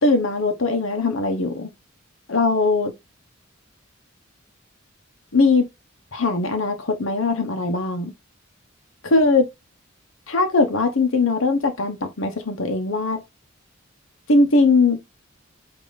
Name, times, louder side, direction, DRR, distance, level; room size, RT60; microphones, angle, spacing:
voice 1, 0.0-1.7 2.3-2.9 5.3-5.7 6.1-8.1 9.0-9.4 10.3-13.2 14.3-15.0, left 3 dB, 75° left, 1.0 m, -20 dB
8.4 x 2.8 x 4.0 m
head